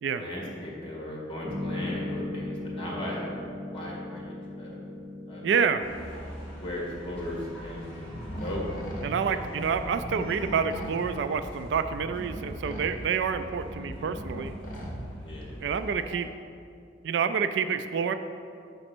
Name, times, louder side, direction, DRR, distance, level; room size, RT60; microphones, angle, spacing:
voice 1, 0.1-3.4 3.7-4.8 5.3-5.5 6.5-8.1 8.4-8.7 9.2-9.4 13.7-14.1 15.2-15.5, left 1 dB, 30° left, -3 dB, 1.5 m, -37 dB
sound 1, 1.4-8.0, left 2 dB, 35° right, 1.0 m, -38 dB
voice 2, 5.4-5.9 9.0-14.5 15.6-16.3 17.0-18.1, right 6 dB, 65° right, 10 dB, 0.3 m, -28 dB
sound 2, 5.8-16.2, equal, 5° left, 1.6 m, -43 dB
sound 3, 7.8-15.5, equal, 50° left, 0.9 m, -40 dB
5.3 x 5.0 x 6.0 m, 2.4 s
head